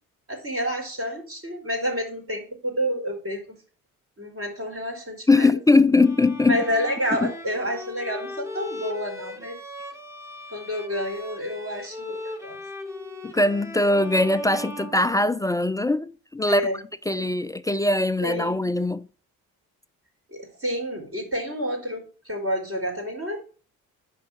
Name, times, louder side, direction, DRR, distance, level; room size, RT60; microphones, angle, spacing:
voice 1, 0.3-3.6 4.2-5.9 6.5-9.6 10.5-12.6 16.4-16.8 17.2-17.3 18.2-18.7 20.3-23.4, equal, 30° right, 4.6 m, -29 dB
voice 2, 5.3-6.6 7.2-7.3 13.2-16.6 17.1-19.1, left 2 dB, 10° left, 0.4 m, -21 dB
Bowed string instrument, 6.0-15.7, left 1 dB, 5° right, 1.4 m, -39 dB
10.0 x 4.0 x 5.0 m
figure-of-eight pair, 45°, 42 cm